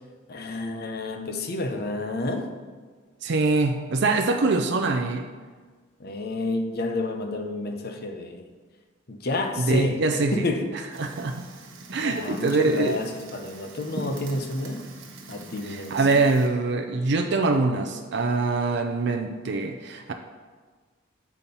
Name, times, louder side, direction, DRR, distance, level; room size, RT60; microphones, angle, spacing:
voice 1, 0.3-2.5 6.0-8.5 9.1-10.7 12.0-14.9 15.3-16.2, left 2 dB, 50° left, 5 dB, 0.7 m, -30 dB
voice 2, 3.2-5.3 9.6-10.3 11.0-11.4 11.9-13.0 15.7-20.1, right 3 dB, 60° right, 4 dB, 0.5 m, -24 dB
Fire, 10.9-16.5, right 2 dB, 85° right, 1.0 m, -42 dB
7.0 x 4.3 x 5.3 m, 1.5 s
head